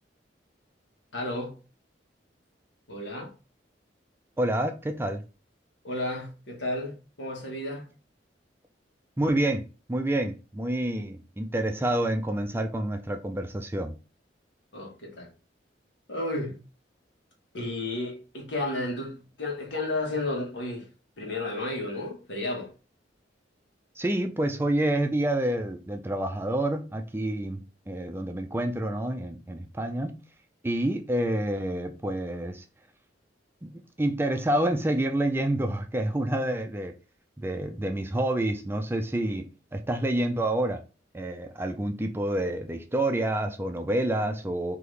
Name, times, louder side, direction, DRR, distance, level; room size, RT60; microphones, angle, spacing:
voice 1, 1.1-1.6 2.9-3.3 5.8-7.9 14.7-15.3 16.1-16.6 17.5-20.9 21.2-22.7, left 2 dB, 85° left, 1.4 m, -32 dB
voice 2, 4.4-5.2 9.2-14.0 24.0-30.2 30.6-32.6 33.6-37.0 37.4-40.8 41.1-44.8, right 1 dB, 15° right, 0.4 m, -28 dB
3.9 x 2.9 x 3.2 m
head